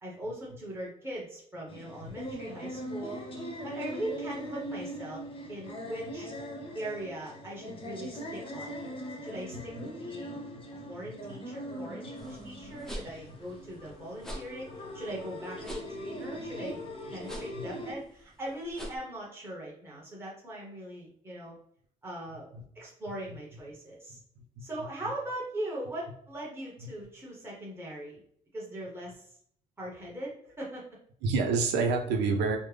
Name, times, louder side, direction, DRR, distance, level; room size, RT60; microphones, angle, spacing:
voice 1, 0.0-3.2 3.6-5.2 5.5-6.3 6.7-8.8 9.2-10.5 10.9-16.8 17.1-21.5 22.0-24.2 24.6-28.2 28.5-29.3 29.8-30.8, right 1 dB, 15° right, -5 dB, 1.1 m, -40 dB
sound 1, 1.7-17.9, equal, 30° left, 0.8 m, -41 dB
voice 2, 9.5-9.8 17.5-17.7 24.4-24.5 26.8-26.9 31.2-32.6, right 4 dB, 85° right, 4 dB, 0.6 m, -28 dB
sound 2, 12.2-19.0, equal, 5° left, 0.7 m, -45 dB
3.2 x 2.1 x 3.3 m, 0.64 s
cardioid pair, 110°, 17 cm